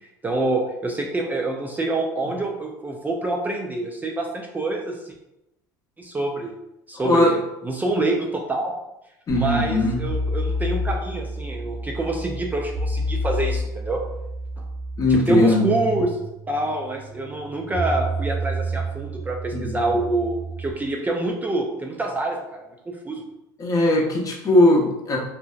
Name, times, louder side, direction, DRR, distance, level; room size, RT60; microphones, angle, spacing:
voice 1, 0.2-5.1 6.0-6.5 6.9-8.7 9.3-14.0 14.6-14.7 15.1-16.2 16.5-23.2, right 2 dB, 15° right, 1 dB, 0.4 m, -26 dB
voice 2, 7.0-7.3 9.3-10.0 15.0-15.7 19.5-19.7 23.6-25.2, left 1 dB, 35° left, 0 dB, 0.7 m, -19 dB
sound 1, 9.3-20.7, equal, 60° right, 0.6 m, -29 dB
2.6 x 2.1 x 2.4 m, 0.89 s
hypercardioid pair, 80°, 10 cm